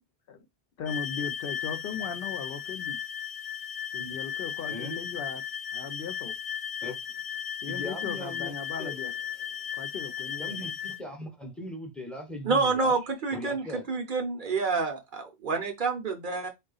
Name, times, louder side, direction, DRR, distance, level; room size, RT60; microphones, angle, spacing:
voice 1, 0.8-3.0 3.9-5.4 5.7-6.3 7.6-9.1 9.7-10.7, left 5 dB, 65° left, 0.7 m, -37 dB
sound 1, 0.9-11.0, left 8 dB, 35° left, 0.4 m, -35 dB
voice 2, 4.7-5.0 6.8-7.0 7.7-8.5 8.8-8.9 10.4-13.0 13.3-13.9, left 1 dB, ahead, 0.7 m, -39 dB
voice 3, 12.4-16.5, right 4 dB, 55° right, 0.8 m, -28 dB
3.6 x 2.3 x 3.9 m
omnidirectional pair, 1.1 m